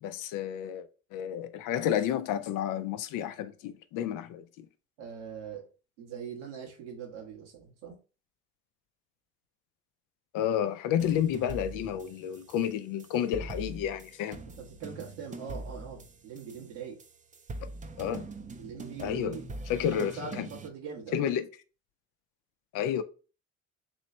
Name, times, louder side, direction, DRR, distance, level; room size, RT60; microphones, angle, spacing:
voice 1, 0.0-4.7 10.3-14.4 18.0-18.3 19.0-19.4 19.7-20.5 21.1-21.5 22.7-23.0, left 9 dB, 65° left, 0.6 m, -31 dB
voice 2, 5.0-5.7 6.0-8.0 14.6-17.0 18.6-19.5 19.9-21.3, right 6 dB, 90° right, 1.3 m, -42 dB
sound 1, 11.0-20.7, right 2 dB, 20° right, 0.5 m, -43 dB
3.2 x 3.1 x 4.1 m
hypercardioid pair, 65°, 35 cm